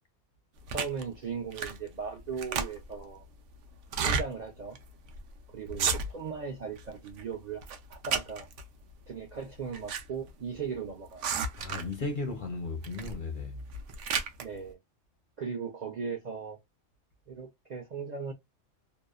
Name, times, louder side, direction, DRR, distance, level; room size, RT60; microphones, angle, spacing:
voice 1, 0.7-3.3 4.0-4.8 5.5-7.6 7.9-8.5 9.1-11.2 14.4-14.8 15.4-16.6 17.3-18.3, right 5 dB, 55° right, 0.5 m, -38 dB
sound 1, 0.7-1.0 1.5-1.9 2.2-3.0 3.8-4.3 4.7-4.8 5.1-5.3 5.7-6.3 6.8-7.2 7.6-8.6 9.4-10.0 10.3-10.4 11.2-12.0 12.8-13.2 13.6-14.4, right 6 dB, 75° right, 0.9 m, -32 dB
voice 2, 11.6-13.6, left 3 dB, 55° left, 0.6 m, -35 dB
2.7 x 2.0 x 2.2 m
omnidirectional pair, 1.3 m